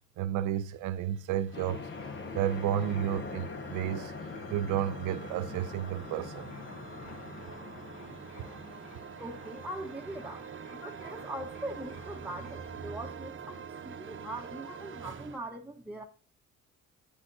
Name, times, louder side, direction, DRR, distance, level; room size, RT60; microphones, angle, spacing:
voice 1, 0.2-1.9 2.3-4.1 4.5-6.5, right 11 dB, 85° right, 0.6 m, -31 dB
sound 1, 0.7-15.4, right 6 dB, 40° right, 0.9 m, -46 dB
sound 2, 1.5-12.8, left 3 dB, 75° left, 3.1 m, -54 dB
sound 3, 1.5-9.6, left 4 dB, 40° left, 0.9 m, -43 dB
voice 2, 9.2-16.0, right 1 dB, 5° right, 1.0 m, -41 dB
9.9 x 9.1 x 2.7 m
cardioid pair, 90°, 30 cm